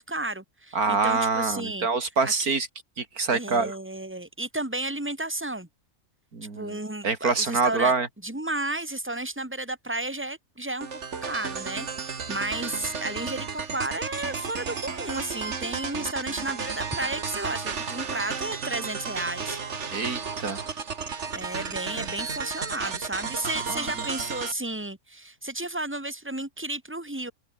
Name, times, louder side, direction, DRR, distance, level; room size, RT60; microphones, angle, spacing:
voice 1, 0.0-1.9 2.2-2.5 3.3-5.7 6.6-7.9 8.2-19.6 21.3-27.3, right 2 dB, 10° right, 3.0 m, -33 dB
voice 2, 0.7-2.7 3.0-3.7 6.3-6.8 7.0-8.1 19.9-20.7 23.7-23.9, right 4 dB, 90° right, 3.4 m, -25 dB
sound 1, 10.8-24.5, right 5 dB, 50° right, 1.9 m, -33 dB
open air
omnidirectional pair, 1.5 m